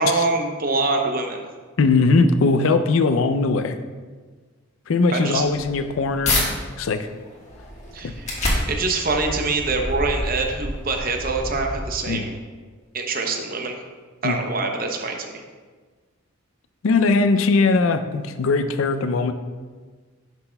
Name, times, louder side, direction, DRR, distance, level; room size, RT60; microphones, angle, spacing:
voice 1, 0.0-1.5 5.1-5.4 7.9-8.3 8.7-12.3 12.9-13.8 14.2-15.4, right 3 dB, 40° right, 4 dB, 0.7 m, -24 dB
voice 2, 1.8-3.8 4.9-6.5 6.8-7.1 12.1-12.3 14.2-14.4 16.8-19.3, left 3 dB, 65° left, 9 dB, 0.4 m, -20 dB
sound 1, 5.5-6.5 7.0-12.3, left 1 dB, 35° left, 1.4 m, -28 dB
9.6 x 6.0 x 2.2 m, 1.5 s
head